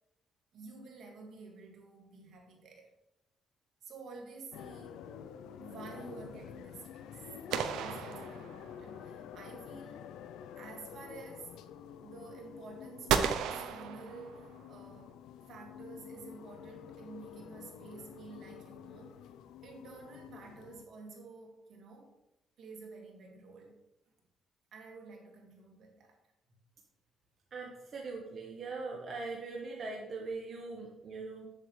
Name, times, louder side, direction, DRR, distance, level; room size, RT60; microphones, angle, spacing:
voice 1, 0.5-2.9 3.8-5.2 5.6-10.1 10.6-11.5 12.0-15.2 15.5-19.2 19.6-22.1 22.6-23.8 24.7-26.2, right 4 dB, 70° right, 1 dB, 2.0 m, -50 dB
sound 1, 4.5-20.9, left 9 dB, 90° left, 0.4 m, -49 dB
sound 2, 7.5-9.0 13.1-14.7, right 8 dB, 90° right, 0.5 m, -34 dB
voice 2, 27.5-31.4, right 3 dB, 50° right, -1 dB, 1.2 m, -41 dB
8.0 x 7.3 x 3.2 m, 0.88 s
cardioid pair, 90°, 0 cm